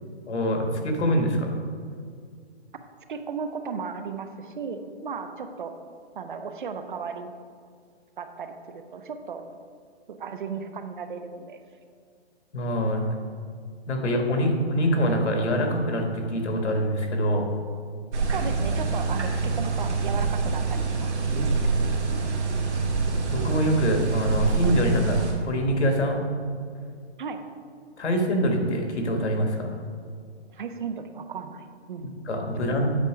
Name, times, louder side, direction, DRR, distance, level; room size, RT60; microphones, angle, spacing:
voice 1, 0.3-1.5 12.5-13.0 13.9-17.4 23.3-25.2 25.5-26.2 28.0-29.8 32.3-32.9, equal, 85° left, 3 dB, 1.7 m, -24 dB
voice 2, 3.1-5.7 6.2-7.3 8.2-9.4 10.1-11.6 18.3-21.8 27.2-27.4 30.5-32.1, right 5 dB, 50° right, 8 dB, 0.6 m, -35 dB
sound 1, 18.1-25.3, right 4 dB, 85° right, 1.7 m, -26 dB
8.3 x 5.0 x 5.0 m, 2.1 s
hypercardioid pair, 165°, 33 cm